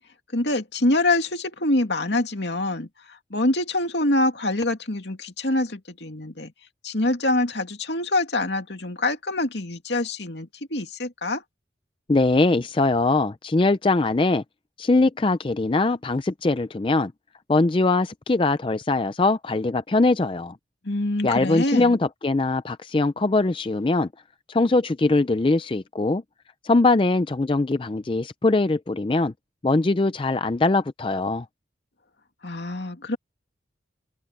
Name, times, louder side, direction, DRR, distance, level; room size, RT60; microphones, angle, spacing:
voice 1, 0.3-6.5 6.8-11.4 20.8-22.0 32.4-33.2, left 2 dB, 70° left, 2.5 m, -25 dB
voice 2, 12.1-14.4 14.8-17.1 17.5-20.6 21.2-24.1 24.5-26.2 26.6-29.3 29.6-31.5, left 2 dB, 30° left, 0.4 m, -21 dB
head